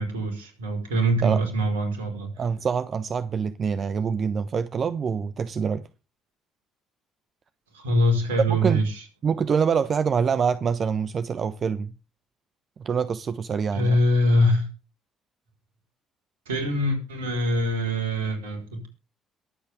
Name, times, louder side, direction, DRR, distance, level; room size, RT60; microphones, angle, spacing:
voice 1, 0.0-2.3 7.7-9.0 13.7-14.7 16.5-18.9, equal, 85° right, 4.6 m, -23 dB
voice 2, 2.4-5.9 8.5-8.8 9.2-11.9 12.8-14.0, right 6 dB, 45° right, 1.0 m, -25 dB
22.0 x 8.4 x 3.6 m
hypercardioid pair, 50°, 0 cm